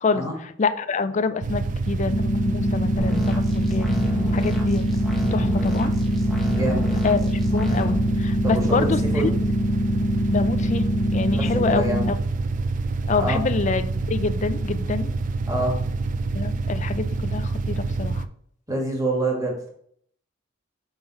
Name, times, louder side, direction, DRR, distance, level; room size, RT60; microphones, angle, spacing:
voice 1, 0.0-4.0 4.3-4.9 5.3-5.9 7.0-9.3 10.3-12.2 13.1-15.1 16.3-18.3, left 4 dB, 35° left, 12 dB, 0.4 m, -26 dB
sound 1, 1.4-18.3, right 3 dB, 40° right, 0.3 m, -27 dB
sound 2, 2.1-12.1, left 1 dB, 65° left, 0.8 m, -25 dB
sound 3, 3.0-8.0, equal, ahead, 1.1 m, -31 dB
voice 2, 6.5-6.9 8.4-8.9 9.1-9.3 11.3-12.1 13.1-13.4 15.5-15.8 18.7-19.7, right 1 dB, 20° right, 0 dB, 1.7 m, -26 dB
5.8 x 3.7 x 5.5 m, 0.65 s
head